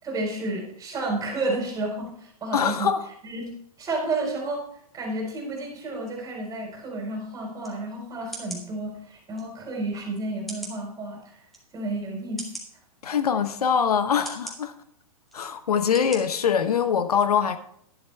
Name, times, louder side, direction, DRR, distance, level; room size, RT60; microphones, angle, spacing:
voice 1, 0.0-2.9 3.2-3.4 3.8-4.6 4.9-11.4 11.7-12.4, right 2 dB, 20° right, 4.3 m, -31 dB
voice 2, 2.5-3.1 13.0-14.7 15.3-17.6, left 7 dB, 85° left, 1.0 m, -23 dB
sound 1, 7.6-7.7 8.3-8.6 9.4-9.5 10.5-10.8 11.5-11.6 12.4-12.7 13.5-13.6 14.2-14.6 15.3-15.4 15.9-16.2 16.6-16.7, right 1 dB, ahead, 2.3 m, -38 dB
11.5 x 11.0 x 3.4 m
hypercardioid pair, 135°, 19 cm